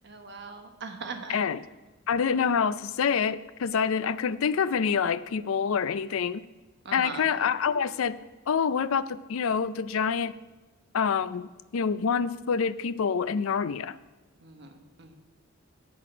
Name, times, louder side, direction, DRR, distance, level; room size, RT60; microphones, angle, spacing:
voice 1, 0.0-1.4 6.8-7.3 14.4-15.1, right 4 dB, 55° right, 5 dB, 1.2 m, -40 dB
voice 2, 1.3-1.6 2.1-6.4 6.9-8.1 8.5-10.3 10.9-14.0, left 6 dB, 70° left, 16 dB, 0.4 m, -26 dB
8.4 x 8.3 x 6.1 m, 1.2 s
head